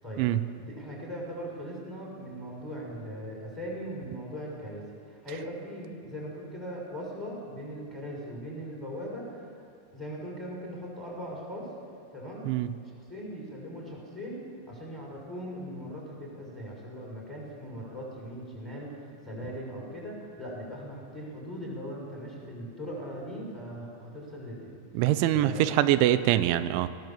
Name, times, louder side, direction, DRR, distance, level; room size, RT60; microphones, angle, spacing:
voice 1, 0.6-9.6 9.9-11.7 12.1-12.5 12.8-24.8 25.3-25.8, equal, ahead, -3 dB, 5.5 m, -39 dB
voice 2, 24.9-26.9, right 13 dB, 90° right, 12 dB, 3.1 m, -24 dB
20.0 x 18.0 x 7.6 m, 2.2 s
omnidirectional pair, 5.3 m